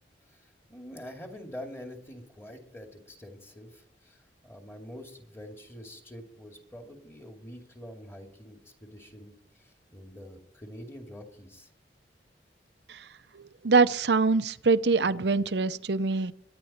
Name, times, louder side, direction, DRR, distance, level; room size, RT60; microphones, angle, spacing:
voice 1, 0.3-11.7, equal, 15° left, 2 dB, 2.6 m, -46 dB
voice 2, 13.3-16.3, right 4 dB, 70° right, 14 dB, 0.7 m, -24 dB
23.5 x 9.7 x 4.4 m, 0.78 s
head